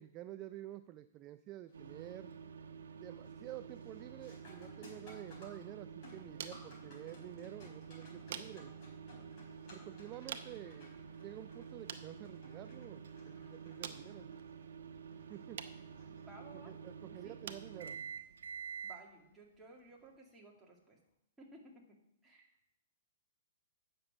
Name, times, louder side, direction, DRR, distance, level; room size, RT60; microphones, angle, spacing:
voice 1, 0.0-2.3 3.0-8.7 9.7-14.3 15.3-15.7 16.5-18.0, right 14 dB, 30° right, 12 dB, 0.3 m, -50 dB
sound 1, 1.7-2.1 2.5-2.9 3.2-16.8 19.3-19.4 20.2-20.4, left 2 dB, 35° left, 4.6 m, -61 dB
sound 2, 1.7-19.0, right 6 dB, 85° right, 1.1 m, -49 dB
sound 3, 5.2-20.2, right 8 dB, 60° right, 0.8 m, -54 dB
voice 2, 16.2-16.7 17.0-17.4 18.8-21.0 21.4-22.5, right 2 dB, 10° right, -3 dB, 2.3 m, -57 dB
8.7 x 6.7 x 7.2 m, 0.80 s
hypercardioid pair, 145°, 0 cm